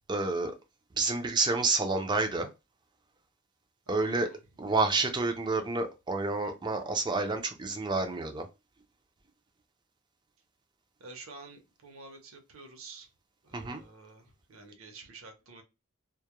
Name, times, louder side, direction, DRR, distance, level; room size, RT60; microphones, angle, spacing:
voice 1, 0.1-0.5 1.0-2.5 3.9-4.3 4.6-8.5 13.5-13.8, right 3 dB, 20° right, 0.4 m, -29 dB
voice 2, 3.9-4.4 11.0-13.1 13.5-14.2 14.5-15.6, right 3 dB, 75° right, 0.7 m, -49 dB
2.3 x 2.1 x 2.9 m
head